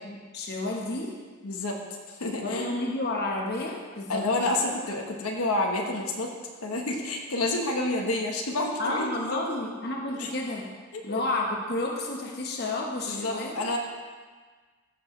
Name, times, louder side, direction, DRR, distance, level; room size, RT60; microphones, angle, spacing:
voice 1, 0.0-1.1 2.4-4.2 8.8-10.7 11.0-13.5, left 2 dB, 45° left, -1 dB, 1.2 m, -31 dB
voice 2, 1.4-1.8 2.1-2.7 4.1-6.3 6.6-9.4 10.2-10.3 10.9-11.2 13.1-13.8, left 2 dB, 80° left, 1 dB, 1.2 m, -29 dB
14.5 x 7.1 x 3.2 m, 1.5 s
head